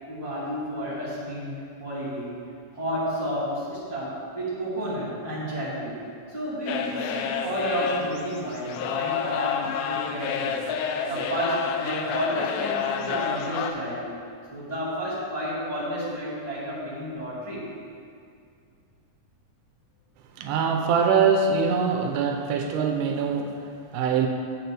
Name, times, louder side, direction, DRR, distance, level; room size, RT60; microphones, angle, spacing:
voice 1, 0.1-2.4 2.7-6.0 6.3-10.6 11.1-14.1 14.5-17.7, equal, 10° left, -9 dB, 1.4 m, -31 dB
sound 1, 6.7-13.7, left 7 dB, 80° left, 1.9 m, -29 dB
voice 2, 20.4-24.3, right 5 dB, 85° right, 3 dB, 2.2 m, -23 dB
10.5 x 8.0 x 3.4 m, 2.3 s
omnidirectional pair, 3.8 m